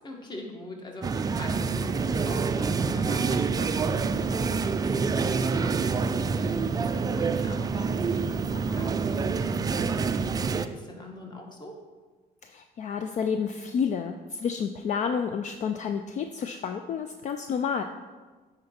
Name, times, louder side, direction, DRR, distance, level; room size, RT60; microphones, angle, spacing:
voice 1, 0.0-11.8, left 2 dB, 25° left, 1 dB, 1.4 m, -43 dB
sound 1, 1.0-10.7, right 5 dB, 25° right, 0.3 m, -27 dB
voice 2, 12.4-17.8, left 6 dB, 45° left, 7 dB, 0.4 m, -30 dB
9.4 x 3.9 x 4.4 m, 1.3 s
cardioid pair, 110°, 17 cm